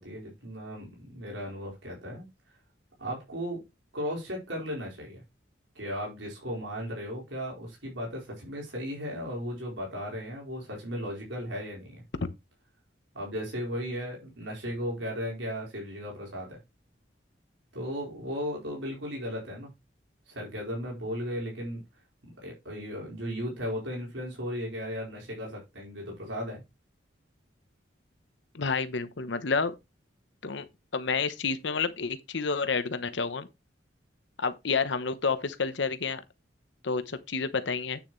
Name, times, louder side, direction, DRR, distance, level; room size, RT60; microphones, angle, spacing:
voice 1, 0.0-2.3 3.0-3.6 3.9-5.2 5.7-12.0 13.1-16.6 17.7-19.7 20.3-21.8 22.2-26.6, equal, 80° right, 4.6 m, -36 dB
voice 2, 28.5-29.7 30.4-30.7 30.9-33.5 34.4-36.2 36.8-38.0, left 4 dB, 70° left, 0.9 m, -29 dB
9.2 x 6.9 x 3.1 m
head